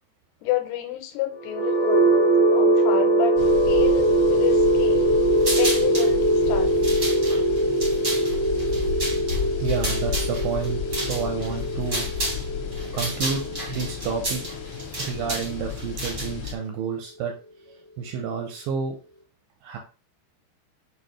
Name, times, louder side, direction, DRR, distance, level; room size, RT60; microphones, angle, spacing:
voice 1, 0.4-2.2 2.5-3.4 3.7-5.1 5.5-6.8 12.9-13.0, left 12 dB, 90° left, 2.6 m, -30 dB
sound 1, 1.4-15.3, right 1 dB, ahead, 0.8 m, -22 dB
sound 2, 3.4-16.6, left 8 dB, 75° left, 2.6 m, -33 dB
sound 3, 5.4-6.1 6.7-12.4 12.7-16.5, right 1 dB, 65° right, 0.7 m, -31 dB
voice 2, 9.6-12.1 12.9-14.4 15.0-17.3 17.7-19.0 19.6-19.8, right 6 dB, 85° right, 2.1 m, -30 dB
7.0 x 2.4 x 3.1 m
omnidirectional pair, 4.6 m